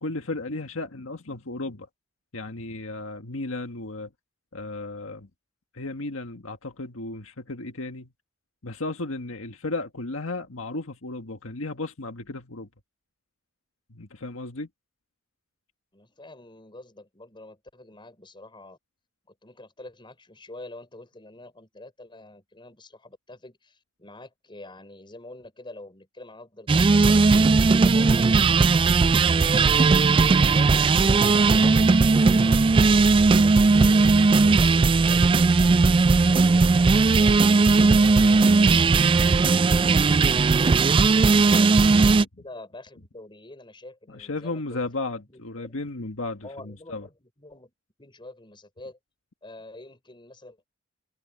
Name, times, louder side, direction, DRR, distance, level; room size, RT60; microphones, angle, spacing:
voice 1, 0.0-1.9 2.3-4.1 4.5-5.3 5.7-8.1 8.6-12.7 13.9-14.7 41.2-41.6 44.1-47.1, left 2 dB, 85° left, 1.6 m, -34 dB
voice 2, 15.9-18.8 19.3-28.3 28.7-34.8 35.0-37.5 37.9-40.9 41.5-44.8 45.3-45.8 46.4-47.7 48.0-49.0 49.4-50.6, left 2 dB, 25° left, 5.8 m, -46 dB
sound 1, 26.7-42.2, right 4 dB, 25° right, 0.3 m, -18 dB
head